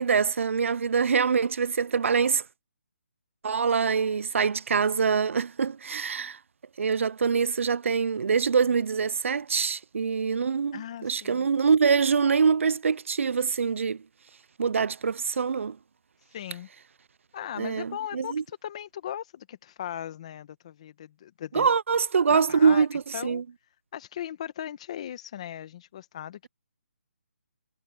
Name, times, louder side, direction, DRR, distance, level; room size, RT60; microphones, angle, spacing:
voice 1, 0.0-2.4 3.4-6.4 6.8-14.0 14.6-15.8 17.6-18.4 21.5-23.4, right 6 dB, 70° right, 0.4 m, -24 dB
voice 2, 10.7-11.5 16.3-16.7 17.3-21.7 22.3-22.9 23.1-23.4 23.9-26.5, left 10 dB, 25° left, 1.1 m, -38 dB
hypercardioid pair, 175°, 7 cm